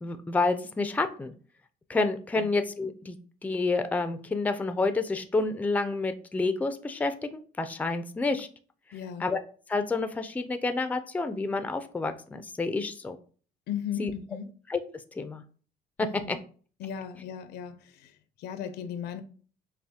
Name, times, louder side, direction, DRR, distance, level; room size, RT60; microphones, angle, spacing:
voice 1, 0.0-1.3 1.9-3.2 3.4-8.5 9.2-9.4 9.7-13.2 14.0-14.1 14.7-14.8 15.2-15.4, left 3 dB, 10° left, 0.3 m, -29 dB
voice 2, 8.9-9.3 13.7-14.5 16.0-16.4 16.8-19.2, left 8 dB, 75° left, 0.5 m, -37 dB
5.5 x 2.1 x 2.8 m
cardioid pair, 110°, 17 cm